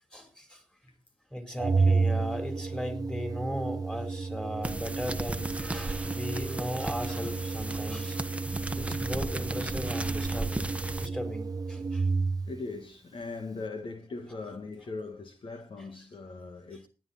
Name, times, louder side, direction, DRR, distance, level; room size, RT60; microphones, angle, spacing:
voice 1, 0.1-0.6 1.3-8.2 8.8-10.6 10.9-12.0, equal, 5° left, 4.3 m, -37 dB
Organ, 1.6-12.6, right 4 dB, 35° right, 0.7 m, -31 dB
sound 1, 4.6-11.1, right 1 dB, 10° right, 1.2 m, -36 dB
voice 2, 8.7-9.1 11.8-11.9 12.5-16.9, left 3 dB, 55° left, 1.8 m, -40 dB
16.5 x 9.3 x 4.3 m
cardioid pair, 70°, 11 cm